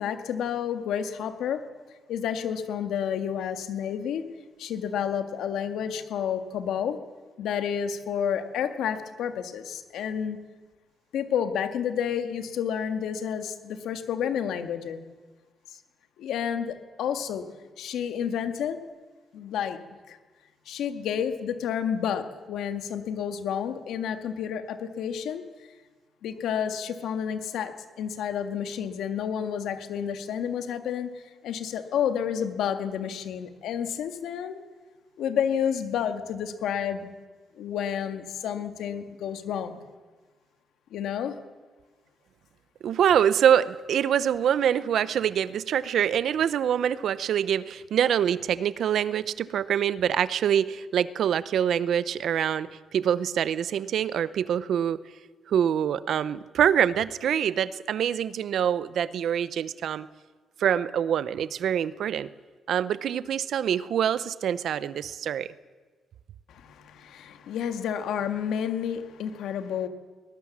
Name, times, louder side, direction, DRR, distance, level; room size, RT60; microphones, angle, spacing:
voice 1, 0.0-1.6 2.1-4.2 4.6-7.0 7.4-10.4 11.1-15.0 15.7-15.8 16.2-17.5 17.8-18.8 19.3-19.8 20.1-20.2 20.7-25.4 26.2-34.6 35.2-37.1 37.6-39.8 40.9-41.3 66.5-69.9, left 8 dB, 90° left, 8 dB, 1.8 m, -30 dB
voice 2, 42.8-55.0 55.5-60.1 60.6-62.3 62.7-65.5, right 9 dB, 60° right, 16 dB, 0.7 m, -25 dB
22.0 x 20.0 x 7.4 m, 1.4 s
cardioid pair, 175°, 0 cm